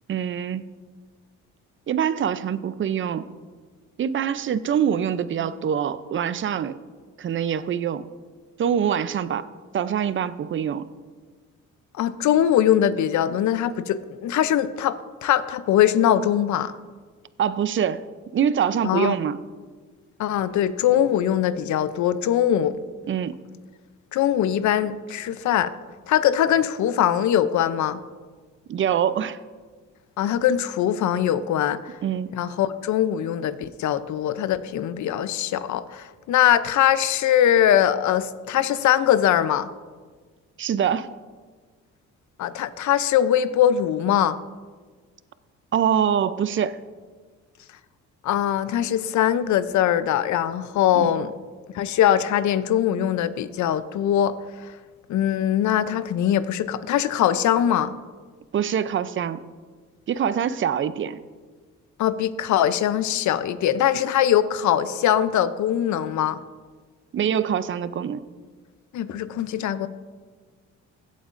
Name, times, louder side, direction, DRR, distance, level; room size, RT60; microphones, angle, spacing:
voice 1, 0.1-0.7 1.9-3.3 4.0-6.8 7.2-8.0 8.6-9.5 9.7-10.9 17.4-18.0 18.3-19.4 23.1-23.4 28.7-29.4 32.0-32.3 40.6-41.1 45.7-46.8 51.0-51.1 58.5-59.4 60.1-61.2 67.1-68.2, right 8 dB, 40° right, 15 dB, 0.5 m, -24 dB
voice 2, 11.9-16.7 18.8-19.2 20.2-22.8 24.1-25.7 26.1-28.0 30.2-31.9 32.3-39.7 42.4-44.4 48.2-51.3 51.7-54.4 55.1-57.9 62.0-66.4 68.9-69.9, left 10 dB, 70° left, 14 dB, 0.6 m, -22 dB
16.0 x 8.4 x 2.5 m, 1.5 s
cardioid pair, 90°, 30 cm